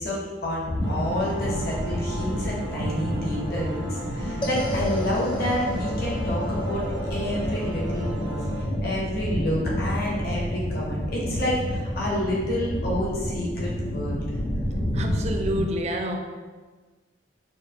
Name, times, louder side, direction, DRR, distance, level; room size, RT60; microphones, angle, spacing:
voice 1, 0.0-8.4 8.8-14.2 14.8-14.9, equal, 55° left, -4 dB, 0.9 m, -29 dB
sound 1, 0.6-15.6, equal, 90° left, 0.8 m, -30 dB
sound 2, 0.8-8.7, right 1 dB, 85° right, 0.7 m, -38 dB
sound 3, 4.4-14.8, left 1 dB, 25° left, 0.6 m, -37 dB
voice 2, 14.9-16.2, equal, 35° right, 4 dB, 0.4 m, -28 dB
4.9 x 2.1 x 3.7 m, 1.3 s
head